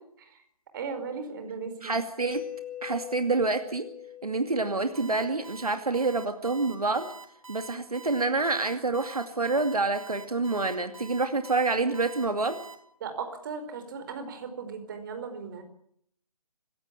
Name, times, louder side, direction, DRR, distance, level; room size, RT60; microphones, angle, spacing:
voice 1, 0.7-1.9 4.4-4.5 13.0-15.6, right 5 dB, 35° right, 7 dB, 4.8 m, -37 dB
voice 2, 1.8-2.4 2.8-3.9 4.2-7.1 7.5-12.6, right 3 dB, 75° right, 7 dB, 2.5 m, -27 dB
Mallet percussion, 2.3-6.1, left 11 dB, 10° left, 1.6 m, -43 dB
Alarm, 4.9-12.7, right 5 dB, 60° right, 7.1 m, -46 dB
26.0 x 16.5 x 8.6 m, 0.68 s
figure-of-eight pair, 145°, 19 cm